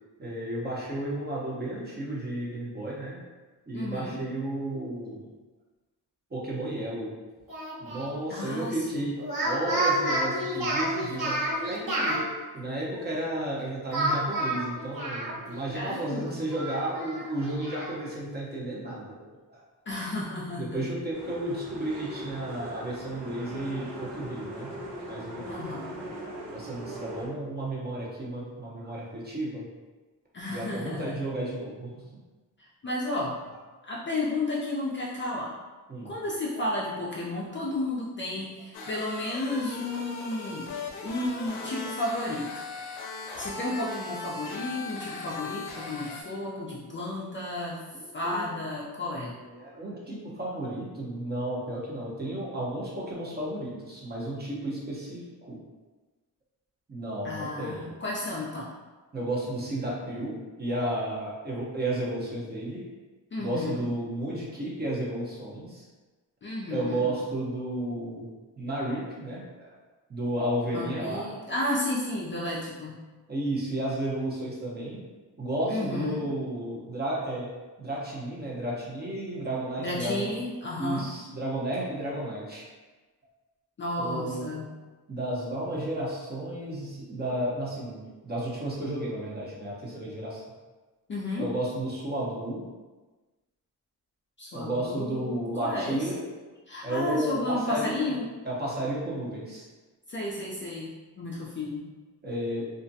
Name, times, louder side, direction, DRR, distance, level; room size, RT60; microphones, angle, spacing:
voice 1, 0.2-3.2 3.7-5.2 6.3-7.1 7.8-19.6 20.6-24.7 25.1-25.8 26.1-26.2 26.5-29.7 30.5-32.0 35.9-36.1 36.5-36.6 38.4-38.5 38.8-38.9 39.9-40.0 40.5-40.6 41.0-41.1 41.8-41.9 43.7-43.9 45.5-47.0 47.9-48.5 49.3-55.6 56.9-58.0 59.1-62.9 63.4-65.8 66.7-68.3 68.6-69.7 70.1-71.3 73.3-75.0 75.4-77.5 77.8-80.3 80.8-82.7 84.0-84.5 85.1-90.4 91.4-92.6 94.5-96.2 96.8-98.2 98.4-99.7 102.2-102.7, right 1 dB, 25° right, -5 dB, 0.8 m, -33 dB
voice 2, 3.7-4.2 8.3-9.0 15.7-16.4 19.9-20.8 25.4-26.1 30.3-31.1 32.6-33.4 33.8-35.5 36.0-40.7 41.0-42.7 43.4-47.8 48.1-49.3 57.2-58.7 63.3-63.9 66.4-67.1 70.7-73.0 75.7-76.3 79.8-81.1 83.8-84.7 91.1-91.5 94.4-96.2 96.7-98.3 100.1-101.8, left 2 dB, 30° left, -5 dB, 0.4 m, -32 dB
Speech, 7.5-8.1 9.2-12.2 13.9-15.6 16.0-16.1 16.5-17.9, right 1 dB, 55° right, 1.2 m, -29 dB
sound 1, 21.1-27.3, equal, 75° right, 0.9 m, -40 dB
sound 2, 38.7-46.2, left 3 dB, 75° left, 0.5 m, -38 dB
2.4 x 2.1 x 2.6 m, 1.3 s
cardioid pair, 75°, 39 cm